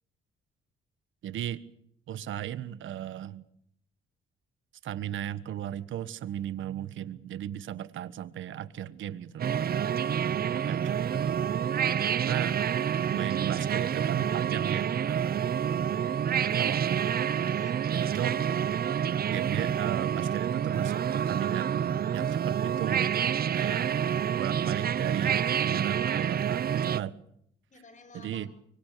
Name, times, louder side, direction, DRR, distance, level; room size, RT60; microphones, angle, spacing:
voice 1, 1.2-1.6 2.1-3.4 4.8-9.5 10.5-11.6 12.2-12.5 13.1-15.5 16.4-17.2 17.9-18.4 19.3-23.1 23.5-23.9 24.4-27.2 28.1-28.5, right 11 dB, 75° right, 14 dB, 1.5 m, -36 dB
sound 1, 9.4-27.0, right 8 dB, 50° right, 1.0 m, -28 dB
voice 2, 10.3-10.8 17.5-18.1 27.7-28.5, left 4 dB, 40° left, 10 dB, 6.6 m, -53 dB
24.5 x 24.0 x 6.9 m, 0.72 s
cardioid pair, 90°, 20 cm